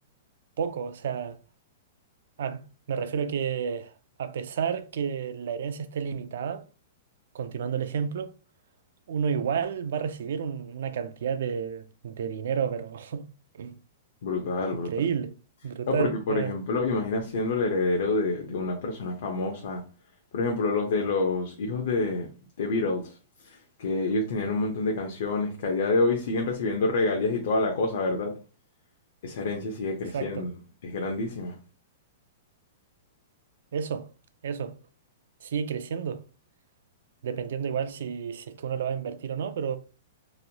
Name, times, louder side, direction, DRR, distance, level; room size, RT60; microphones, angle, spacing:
voice 1, 0.6-1.4 2.4-2.6 2.9-3.9 4.2-6.7 7.3-8.3 9.1-13.3 13.5-13.8 14.7-15.3 15.6-16.5 30.1-30.5 33.7-34.1 34.4-34.7 35.4-36.2 37.2-39.8, right 7 dB, 70° right, 0.3 m, -31 dB
voice 2, 14.2-14.9 15.9-19.8 20.3-22.3 22.6-23.2 23.4-28.4 29.2-30.5 30.8-31.6, left 3 dB, 60° left, 0.6 m, -27 dB
3.0 x 2.2 x 2.7 m
hypercardioid pair, 170°, 0 cm